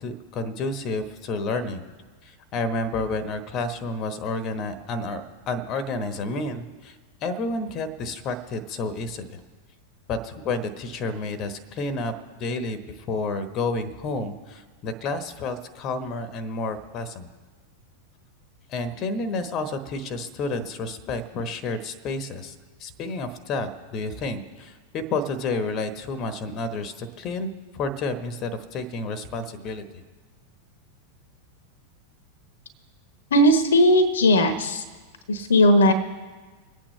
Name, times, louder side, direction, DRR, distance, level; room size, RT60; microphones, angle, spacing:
voice 1, 0.0-1.8 2.2-7.0 7.2-9.4 10.1-12.1 12.4-17.3 18.7-22.5 22.8-29.8, left 2 dB, 35° left, 10 dB, 1.1 m, -30 dB
voice 2, 33.3-34.8 35.3-35.9, left 1 dB, 65° left, 11 dB, 1.1 m, -17 dB
26.5 x 8.8 x 3.2 m, 1.4 s
figure-of-eight pair, 90°, 0 cm